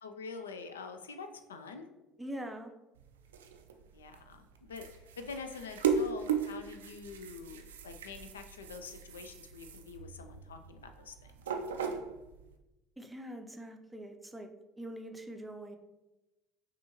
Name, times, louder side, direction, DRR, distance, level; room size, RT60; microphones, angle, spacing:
voice 1, 0.0-1.9 3.9-11.3, left 5 dB, 75° left, 7 dB, 0.3 m, -46 dB
voice 2, 2.2-2.7 13.0-14.5 14.8-15.8, right 1 dB, 10° right, 5 dB, 0.5 m, -43 dB
sound 1, 3.0-12.5, right 6 dB, 70° right, 0.3 m, -37 dB
5.9 x 2.4 x 2.9 m, 1.0 s
figure-of-eight pair, 60°, 0 cm